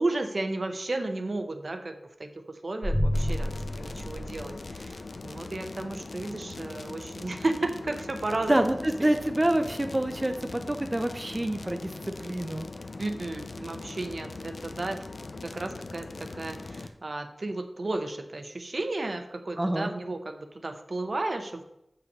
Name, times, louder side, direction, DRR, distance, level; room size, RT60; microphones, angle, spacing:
voice 1, 0.0-8.5 9.0-9.1 13.0-15.0 15.5-21.6, right 2 dB, 65° right, 6 dB, 0.8 m, -33 dB
sound 1, 2.8-5.1, equal, 10° right, 1.5 m, -29 dB
sound 2, 3.1-16.9, left 3 dB, 85° left, 0.6 m, -41 dB
voice 2, 8.5-12.7 19.6-19.9, right 1 dB, 25° right, 6 dB, 0.6 m, -27 dB
7.0 x 5.7 x 5.3 m, 0.82 s
wide cardioid pair, 70°, 0 cm